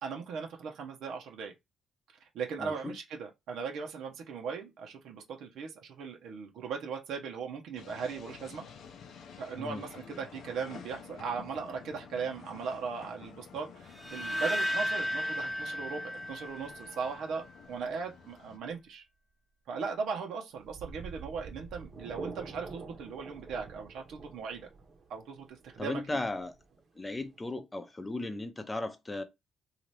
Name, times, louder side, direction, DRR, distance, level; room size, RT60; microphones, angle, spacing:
voice 1, 0.0-1.5 2.2-8.6 9.4-19.0 19.7-24.7 25.1-26.2, right 5 dB, 80° right, 0.7 m, -38 dB
voice 2, 2.6-2.9 9.6-9.8 25.8-26.5 27.0-29.2, left 2 dB, 20° left, 0.6 m, -36 dB
sound 1, 7.8-18.6, left 6 dB, 70° left, 0.5 m, -51 dB
sound 2, 13.9-17.1, equal, 10° right, 0.9 m, -34 dB
sound 3, 20.5-27.4, right 4 dB, 45° right, 0.8 m, -47 dB
2.8 x 2.4 x 3.1 m
cardioid pair, 90°, 0 cm